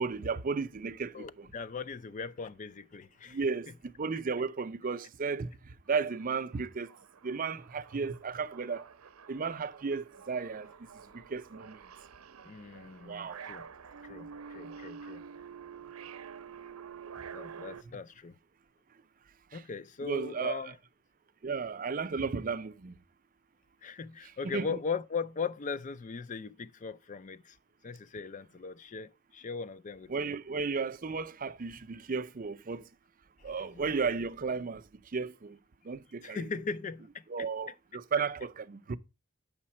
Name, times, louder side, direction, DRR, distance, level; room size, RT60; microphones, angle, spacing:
voice 1, 0.0-1.5 3.3-3.7 4.0-5.5 5.9-6.9 7.2-8.9 9.3-10.7 11.1-11.8 13.0-13.4 19.5-19.6 20.0-20.6 21.4-23.0 24.4-24.8 30.1-32.8 33.4-34.8 35.1-35.6 35.9-36.4 37.3-39.0, right 5 dB, 40° right, 0.5 m, -34 dB
voice 2, 1.1-3.4 12.4-13.6 14.0-15.2 17.3-18.3 19.5-20.8 23.8-27.6 27.8-30.4 33.4-33.9 36.2-37.5, left 5 dB, 35° left, 0.4 m, -39 dB
sound 1, 5.9-6.0 6.3-17.8, right 6 dB, 90° right, 0.7 m, -48 dB
8.6 x 6.5 x 4.2 m
head